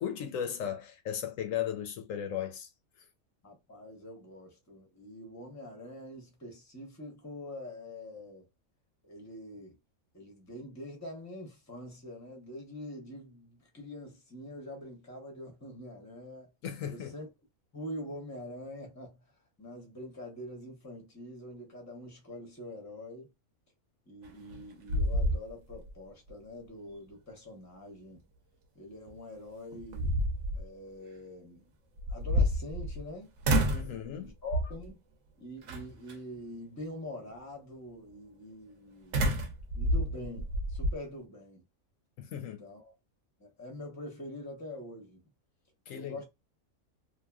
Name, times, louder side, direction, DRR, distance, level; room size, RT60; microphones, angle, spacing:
voice 1, 0.0-2.7 3.0-3.1 16.6-17.1 33.7-34.3 42.2-42.6 45.9-46.3, left 9 dB, 75° left, 0.9 m, -36 dB
voice 2, 3.4-8.4 9.0-9.8 10.1-16.5 16.8-17.3 17.7-19.3 19.6-23.3 24.1-28.2 28.7-30.2 30.5-31.7 32.1-33.3 33.8-35.0 35.4-39.5 39.7-41.6 42.4-42.9 43.4-45.2 45.9-46.3, left 1 dB, 15° left, 0.7 m, -45 dB
sound 1, 24.3-24.6 24.9-25.9 26.3-26.4 29.1-29.2 29.7-30.6 32.0-33.1 33.4-34.0 34.5-34.9 35.7-36.1 39.1-41.0, equal, 65° right, 1.0 m, -29 dB
2.9 x 2.5 x 2.3 m
omnidirectional pair, 1.4 m